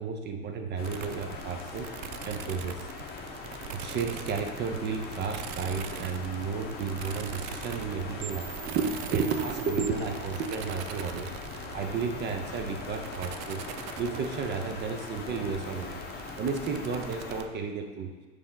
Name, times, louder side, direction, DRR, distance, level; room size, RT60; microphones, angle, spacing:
voice 1, 0.0-2.8 3.7-11.3 11.7-13.6 14.0-16.0 16.4-18.1, right 5 dB, 25° right, 5 dB, 0.5 m, -32 dB
sound 1, 0.8-17.4, left 3 dB, 25° left, 0.8 m, -41 dB
sound 2, 0.8-17.4, right 11 dB, 80° right, 0.5 m, -42 dB
6.6 x 4.8 x 3.8 m, 1.3 s
supercardioid pair, 145°, 41 cm